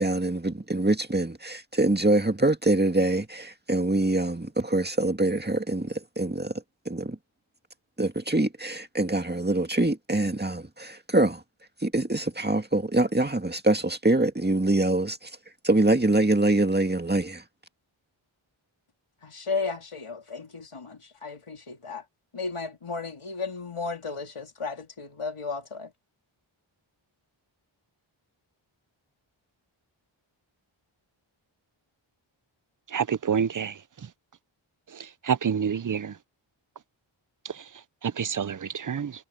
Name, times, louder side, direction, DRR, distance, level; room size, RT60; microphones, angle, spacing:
voice 1, 0.0-6.5 6.9-7.2 8.0-11.4 11.8-15.3 15.6-17.4, right 2 dB, 20° right, 2.0 m, -24 dB
voice 2, 19.2-22.0 22.3-25.9, left 4 dB, 85° left, 3.3 m, -34 dB
voice 3, 32.9-33.7 35.3-36.1 38.2-39.1, right 7 dB, 40° right, 0.6 m, -27 dB
wide cardioid pair, 55°, 49 cm